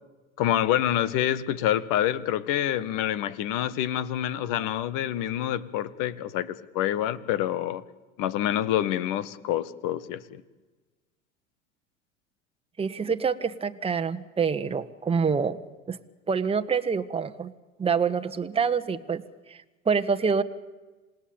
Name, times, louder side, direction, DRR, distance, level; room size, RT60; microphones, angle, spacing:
voice 1, 0.4-7.8 8.2-10.2, left 11 dB, 55° left, 18 dB, 1.5 m, -27 dB
voice 2, 12.8-15.6 15.9-16.0 16.3-17.5 17.8-19.2 19.5-20.4, right 6 dB, 15° right, 8 dB, 1.3 m, -26 dB
27.5 x 19.0 x 8.8 m, 1.2 s
hypercardioid pair, 95°, 38 cm